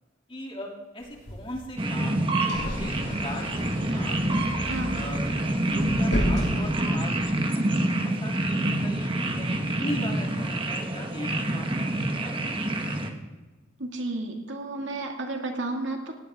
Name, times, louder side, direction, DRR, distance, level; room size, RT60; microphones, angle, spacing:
voice 1, 0.3-4.4 4.9-5.2 5.5-7.7 8.0-12.9, left 1 dB, 30° left, -1 dB, 2.9 m, -39 dB
sound 1, 1.0-7.3, equal, 70° left, 6.8 m, -34 dB
sound 2, 1.8-13.1, right 1 dB, 25° right, 1.3 m, -27 dB
voice 2, 13.8-16.1, right 2 dB, 70° right, 3 dB, 2.2 m, -32 dB
18.5 x 17.5 x 3.7 m, 1.2 s
head